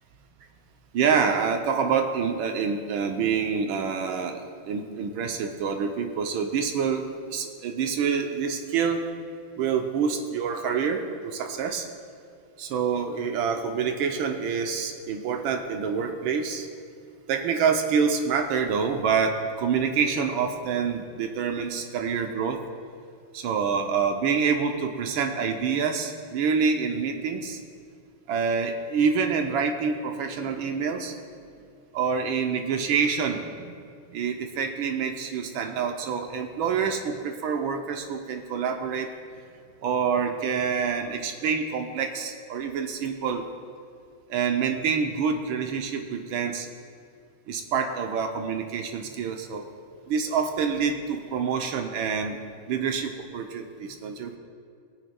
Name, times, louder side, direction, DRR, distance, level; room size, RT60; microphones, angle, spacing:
voice 1, 0.9-9.0 9.6-11.9 12.6-16.7 17.3-22.6 23.3-27.6 28.3-31.2 31.9-33.7 34.1-39.1 39.8-43.4 44.3-46.7 47.5-49.7 50.1-52.4 52.7-54.4, right 6 dB, 85° right, 4 dB, 1.5 m, -27 dB
18.5 x 8.2 x 2.3 m, 2.2 s
omnidirectional pair, 2.2 m